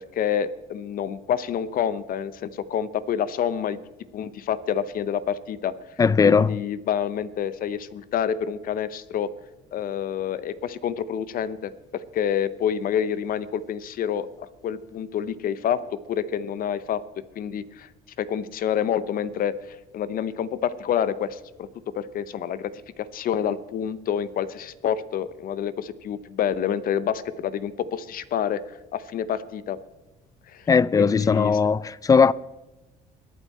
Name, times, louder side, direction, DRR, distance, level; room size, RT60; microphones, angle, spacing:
voice 1, 0.0-3.8 4.1-5.7 6.2-9.3 9.7-17.0 17.4-17.9 18.2-21.7 21.9-22.7 23.0-28.6 28.9-29.8 30.5-30.7 31.0-31.6, left 9 dB, 60° left, 0.7 m, -28 dB
voice 2, 6.0-6.6 30.7-32.3, left 5 dB, 20° left, 0.3 m, -18 dB
22.0 x 8.3 x 4.3 m
cardioid pair, 110°, 17 cm